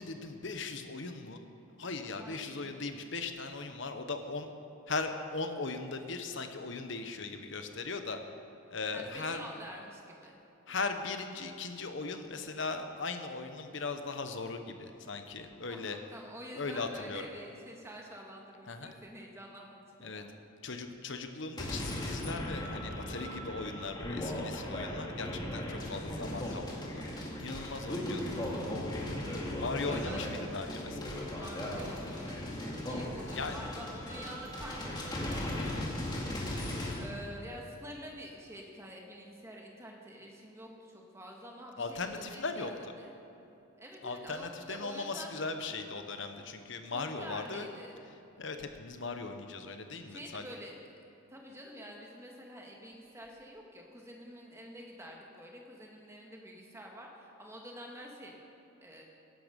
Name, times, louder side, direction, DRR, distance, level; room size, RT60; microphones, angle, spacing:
voice 1, 0.0-1.4 1.8-4.5 4.9-8.2 8.7-9.4 10.7-16.0 16.6-17.3 18.7-18.9 20.0-20.2 20.6-27.0 27.4-28.3 29.6-31.1 33.3-33.6 41.8-42.7 44.0-47.7 48.4-50.5, left 3 dB, 60° left, 7 dB, 1.1 m, -38 dB
voice 2, 2.2-2.8 8.9-10.4 15.7-20.3 28.0-28.4 29.2-29.5 29.9-30.3 31.3-36.5 37.0-43.1 43.8-45.3 46.9-48.0 50.1-50.8 51.3-58.3 58.8-59.0, equal, 15° right, 0 dB, 1.8 m, -48 dB
sound 1, 21.6-37.0, left 1 dB, 20° left, 2.2 m, -37 dB
16.5 x 11.5 x 5.3 m, 3.0 s
head